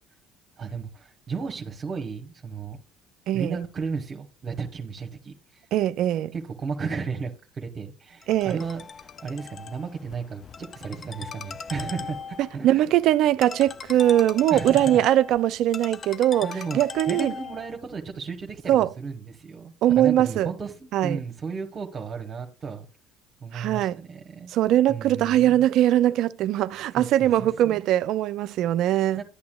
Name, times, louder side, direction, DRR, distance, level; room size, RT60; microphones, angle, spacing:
voice 1, 0.6-2.8 3.3-5.6 6.3-12.9 14.5-15.0 16.4-16.8 17.1-22.9 23.4-24.5 24.9-25.6 27.0-27.8 29.2-29.3, right 5 dB, 40° right, 1.0 m, -34 dB
voice 2, 3.3-3.6 5.7-6.3 8.3-8.6 12.6-17.3 18.7-18.9 19.8-20.5 20.9-21.2 23.5-24.0 24.5-29.2, right 12 dB, 65° right, 0.3 m, -21 dB
Ringtone, 8.2-17.8, left 6 dB, 40° left, 0.4 m, -39 dB
11.5 x 8.5 x 2.2 m
hypercardioid pair, 70°, 0 cm